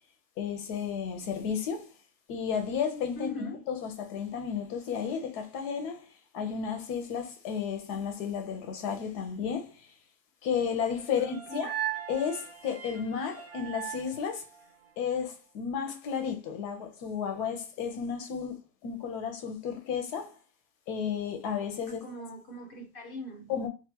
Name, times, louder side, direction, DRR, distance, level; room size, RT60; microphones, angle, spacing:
voice 1, 0.4-1.9 2.3-6.1 6.3-9.9 10.4-11.7 12.1-14.5 15.0-18.5 18.8-20.4 20.9-22.0 23.5-23.7, left 7 dB, 85° left, 1.3 m, -33 dB
voice 2, 3.2-3.6 11.1-11.7 21.9-23.5, equal, 45° left, 0.8 m, -41 dB
sound 1, 10.9-15.1, right 11 dB, 60° right, 0.3 m, -39 dB
3.6 x 2.4 x 2.8 m
omnidirectional pair, 1.6 m